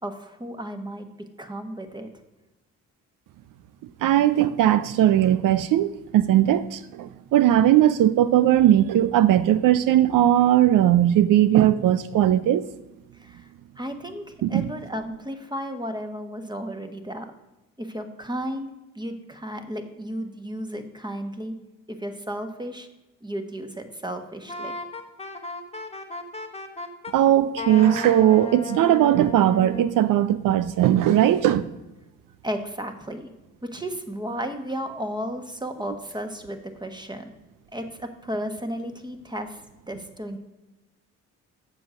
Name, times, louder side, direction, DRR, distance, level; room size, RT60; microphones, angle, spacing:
voice 1, 0.0-2.1 13.1-13.5 13.8-17.3 17.8-18.7 18.9-21.5 21.9-22.9 23.2-24.7 32.4-33.3 33.6-37.3 37.7-39.6 39.9-40.4, equal, 10° right, 1.4 m, -33 dB
voice 2, 4.0-12.7 14.4-14.7 27.1-31.7, right 12 dB, 60° right, 0.5 m, -19 dB
Wind instrument woodwind instrument, 24.5-27.2 27.6-30.0, left 2 dB, 15° left, 1.1 m, -34 dB
7.7 x 6.2 x 6.4 m
hypercardioid pair, 50°, 37 cm